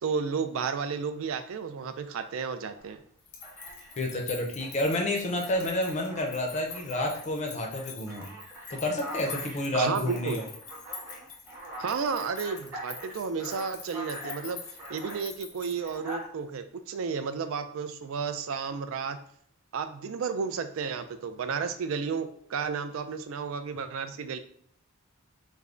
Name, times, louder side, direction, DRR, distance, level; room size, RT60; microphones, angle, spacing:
voice 1, 0.0-3.0 9.7-10.4 11.8-14.6 14.9-19.2 19.7-24.4, right 5 dB, 65° right, 9 dB, 0.3 m, -32 dB
Alarm, 2.8-2.9 3.4-4.1 4.6-7.3 7.7-15.3 15.8-16.2, equal, 10° right, 0.8 m, -44 dB
sound 1, 3.2-16.2, left 6 dB, 85° left, 0.8 m, -45 dB
voice 2, 4.0-8.3 8.7-10.4, left 1 dB, 30° left, 2 dB, 0.5 m, -29 dB
3.4 x 2.1 x 3.7 m, 0.65 s
head